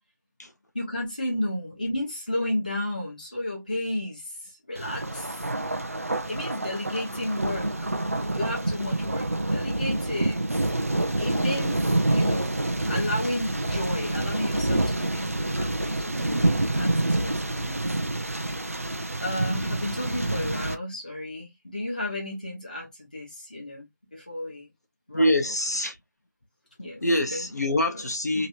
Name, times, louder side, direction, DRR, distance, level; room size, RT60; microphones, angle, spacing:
voice 1, 0.7-5.4 6.2-7.9 8.3-10.4 11.2-12.6 12.8-17.8 19.2-24.7 25.1-25.4 26.8-27.0 27.3-27.5 27.9-28.0 28.3-28.5, left 1 dB, 25° left, 0.9 m, -33 dB
Thunder, 4.7-20.7, right 2 dB, 45° right, 0.5 m, -27 dB
voice 2, 25.1-26.0 27.0-28.5, left 1 dB, 55° left, 0.9 m, -25 dB
3.0 x 2.9 x 2.5 m
figure-of-eight pair, 180°, 10 cm